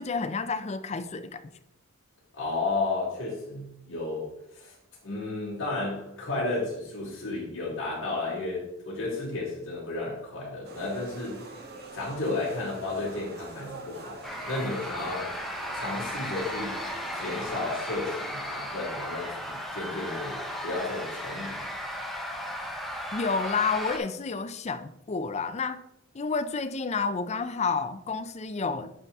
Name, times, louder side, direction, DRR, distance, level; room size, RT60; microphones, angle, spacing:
voice 1, 0.0-1.4 23.1-25.8 26.1-28.9, left 4 dB, 30° left, 0.4 m, -30 dB
voice 2, 2.3-4.7 5.0-11.4 11.9-15.3 15.7-16.8 17.1-21.7, left 2 dB, 60° left, 3.1 m, -33 dB
sound 1, 10.6-17.5, right 3 dB, 50° right, 1.3 m, -44 dB
sound 2, 14.2-24.0, equal, ahead, 0.8 m, -35 dB
11.0 x 4.0 x 3.5 m
head